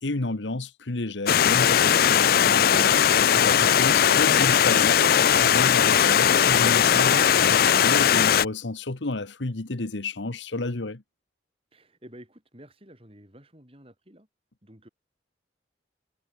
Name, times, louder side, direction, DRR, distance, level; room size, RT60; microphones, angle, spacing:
voice 1, 0.0-3.0 3.3-5.0 5.2-11.0, left 2 dB, 80° left, 1.4 m, -31 dB
Stream, 1.3-8.4, left 9 dB, 55° left, 0.4 m, -19 dB
Wind instrument woodwind instrument, 2.3-7.4, right 1 dB, 80° right, 3.8 m, -47 dB
voice 2, 11.7-14.3 14.6-14.9, equal, 30° right, 6.0 m, -50 dB
head